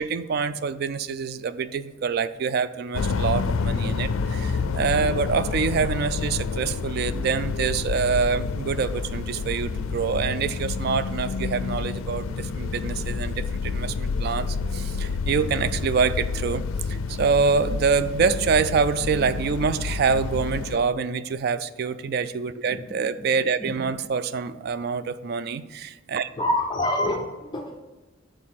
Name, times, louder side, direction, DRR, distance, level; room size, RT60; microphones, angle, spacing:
voice 1, 0.0-16.6 16.9-26.3, right 5 dB, 50° right, 14 dB, 0.3 m, -26 dB
sound 1, 2.9-20.8, left 4 dB, 85° left, 0.4 m, -29 dB
voice 2, 26.4-27.8, left 1 dB, 20° left, 2 dB, 0.4 m, -26 dB
6.4 x 3.9 x 5.7 m, 1.2 s
head